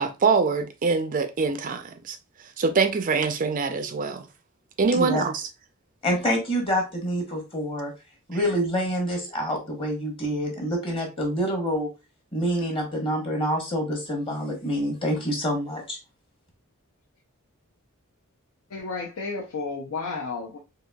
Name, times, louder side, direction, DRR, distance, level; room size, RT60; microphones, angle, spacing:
voice 1, 0.0-2.2 2.6-4.3 4.8-5.4, right 4 dB, 35° right, 0.4 m, -24 dB
voice 2, 4.9-5.2 6.0-7.9 8.3-11.9 12.3-16.0, equal, 25° left, 1.0 m, -27 dB
voice 3, 18.7-20.6, left 4 dB, 75° left, 0.6 m, -32 dB
3.9 x 2.6 x 2.2 m
head